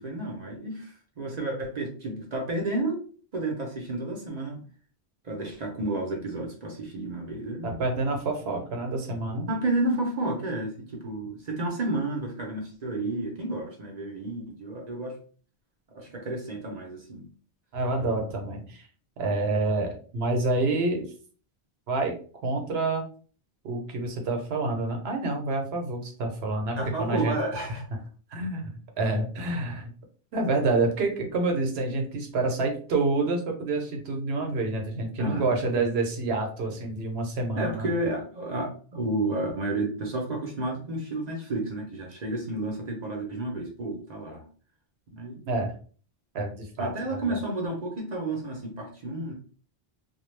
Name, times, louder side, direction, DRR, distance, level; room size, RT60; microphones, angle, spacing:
voice 1, 0.0-3.0 3.3-4.6 5.2-7.8 9.5-15.2 15.9-17.2 26.8-27.8 35.2-35.5 37.6-44.4 45.1-45.5 46.8-49.3, right 2 dB, 45° right, 0 dB, 0.7 m, -31 dB
voice 2, 7.6-9.5 17.7-18.9 19.2-21.1 21.9-22.1 22.4-23.0 23.6-27.4 28.3-29.9 30.3-37.9 45.5-45.7 46.3-46.9 47.3-47.4, right 3 dB, 75° right, 3 dB, 0.9 m, -28 dB
2.2 x 2.1 x 3.1 m, 0.41 s
omnidirectional pair, 1.1 m